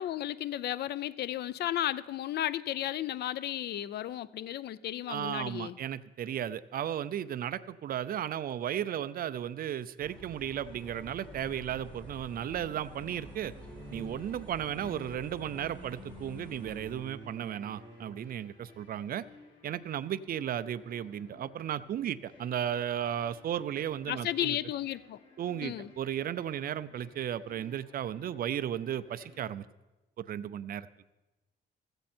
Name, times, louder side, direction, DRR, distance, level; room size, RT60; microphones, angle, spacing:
voice 1, 0.0-5.8 24.1-25.2 25.6-25.9, left 12 dB, 60° left, 18 dB, 0.5 m, -34 dB
voice 2, 5.1-13.5 13.9-19.2 19.6-24.6 25.4-29.6 30.2-30.9, right 10 dB, 50° right, 14 dB, 0.6 m, -35 dB
sound 1, 10.0-16.9, equal, 5° left, 3.3 m, -50 dB
sound 2, 10.3-29.5, left 4 dB, 85° left, 4.8 m, -59 dB
sound 3, 12.5-18.4, equal, 25° right, 6.6 m, -49 dB
16.0 x 14.5 x 4.4 m, 1.1 s
cardioid pair, 140°, 19 cm